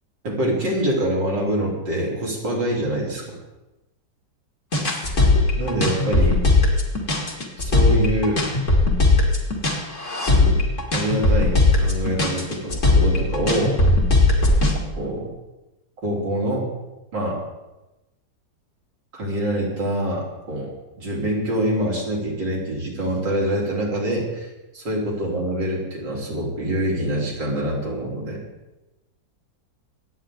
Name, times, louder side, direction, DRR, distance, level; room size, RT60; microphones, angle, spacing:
voice 1, 0.2-3.4 5.0-5.3 5.6-6.4 7.6-8.4 10.3-10.6 10.9-13.8 14.9-15.3 16.0-16.7 17.1-17.4 19.1-24.5 24.7-28.4, right 1 dB, 70° right, -3 dB, 4.2 m, -25 dB
sound 1, 4.7-14.8, left 2 dB, 40° left, 2.7 m, -18 dB
25.0 x 9.5 x 3.9 m, 1.0 s
omnidirectional pair, 2.0 m